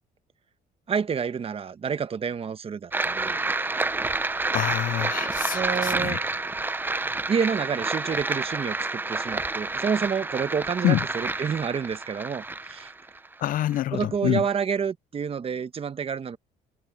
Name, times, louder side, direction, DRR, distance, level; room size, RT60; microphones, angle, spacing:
voice 1, 0.9-3.4 5.5-6.2 7.3-12.9 13.9-16.4, right 6 dB, 35° right, 1.2 m, -29 dB
sound 1, 2.9-13.8, right 3 dB, 10° right, 0.6 m, -29 dB
voice 2, 4.5-6.2 10.8-11.0 13.4-14.5, left 13 dB, 55° left, 0.4 m, -26 dB
cardioid pair, 110°, 17 cm